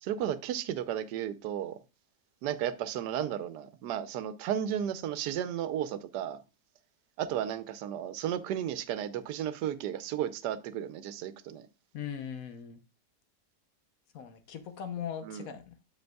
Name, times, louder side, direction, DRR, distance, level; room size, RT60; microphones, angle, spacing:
voice 1, 0.0-1.8 2.4-6.4 7.2-11.7 15.2-15.5, right 10 dB, 85° right, 1.2 m, -34 dB
voice 2, 11.9-12.8 14.1-15.7, left 8 dB, 65° left, 1.1 m, -39 dB
7.7 x 6.6 x 2.2 m
omnidirectional pair, 1.7 m